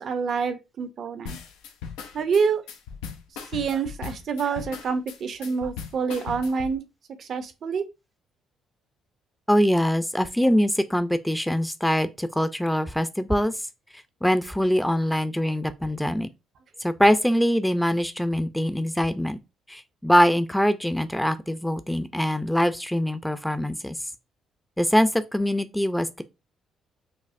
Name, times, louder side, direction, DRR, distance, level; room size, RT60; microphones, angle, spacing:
voice 1, 0.0-1.4 2.1-2.6 3.5-6.8 7.2-7.9, right 5 dB, 60° right, 0.6 m, -27 dB
sound 1, 1.3-6.8, left 6 dB, 90° left, 0.5 m, -38 dB
voice 2, 9.5-13.5 14.2-16.3 16.8-19.4 19.7-24.0 24.8-26.2, equal, 5° left, 0.5 m, -23 dB
5.1 x 2.0 x 2.5 m
supercardioid pair, 65°, 0 cm